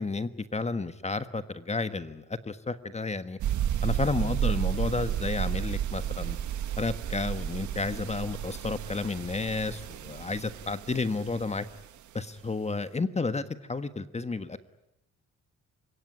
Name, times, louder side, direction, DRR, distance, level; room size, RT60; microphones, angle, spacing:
voice 1, 0.0-3.4 3.8-6.4 6.8-11.7 12.1-14.6, left 3 dB, 20° left, 12 dB, 1.4 m, -31 dB
sound 1, 3.4-11.8, right 10 dB, 75° right, 1.8 m, -32 dB
30.0 x 17.5 x 9.7 m, 0.86 s
cardioid pair, 90°, 30 cm